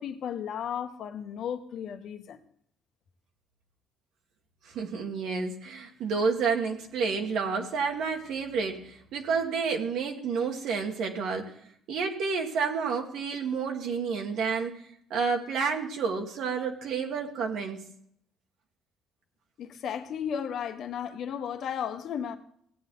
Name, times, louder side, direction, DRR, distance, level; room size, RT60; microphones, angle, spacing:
voice 1, 0.0-2.4 19.6-22.4, left 8 dB, 60° left, 1.3 m, -34 dB
voice 2, 4.7-11.5 11.9-14.8 15.1-17.9, right 5 dB, 70° right, 1.9 m, -30 dB
16.5 x 8.6 x 3.9 m
cardioid pair, 110°, 0 cm